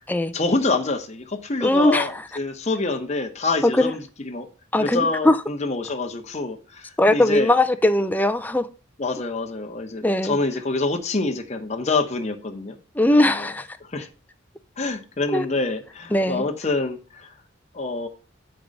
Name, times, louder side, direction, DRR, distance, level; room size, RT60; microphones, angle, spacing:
voice 1, 0.3-4.0 4.2-4.5 4.8-7.5 9.0-12.8 13.1-13.5 13.9-14.1 14.8-17.3 17.7-18.1, left 3 dB, 35° left, 0.9 m, -26 dB
voice 2, 1.6-2.2 3.6-3.9 4.7-5.4 7.0-8.7 10.0-10.4 12.9-13.7 15.3-15.5 16.1-16.4, left 1 dB, 10° left, 0.4 m, -20 dB
7.6 x 4.6 x 5.2 m
head